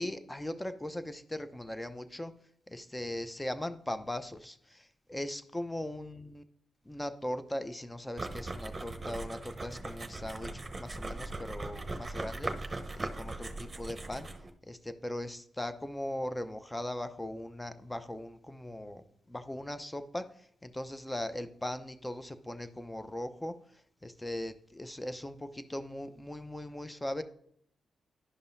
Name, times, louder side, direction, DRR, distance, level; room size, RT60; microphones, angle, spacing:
voice 1, 0.0-2.3 2.7-6.4 6.9-14.3 14.7-23.6 24.0-27.2, left 1 dB, 15° left, 11 dB, 0.7 m, -39 dB
sound 1, 8.2-14.5, right 2 dB, 35° right, 0.9 m, -39 dB
11.0 x 5.4 x 2.6 m, 0.66 s
supercardioid pair, 50°, 0 cm